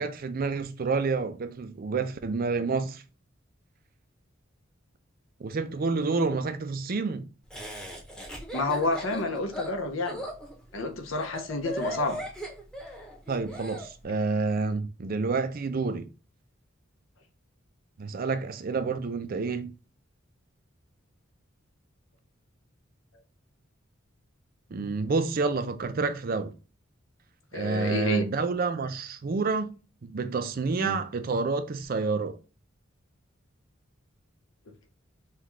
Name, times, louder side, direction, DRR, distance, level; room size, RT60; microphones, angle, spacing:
voice 1, 0.0-3.0 5.4-7.2 13.3-16.1 18.0-19.7 24.7-26.5 27.5-29.7 30.0-32.3, right 4 dB, 45° right, 0.4 m, -29 dB
Laughter, 7.5-13.9, right 1 dB, 5° left, 0.8 m, -38 dB
voice 2, 8.5-10.2 10.7-12.2 27.5-28.3 30.8-31.0, left 2 dB, 80° left, 0.8 m, -29 dB
5.7 x 2.3 x 3.1 m
head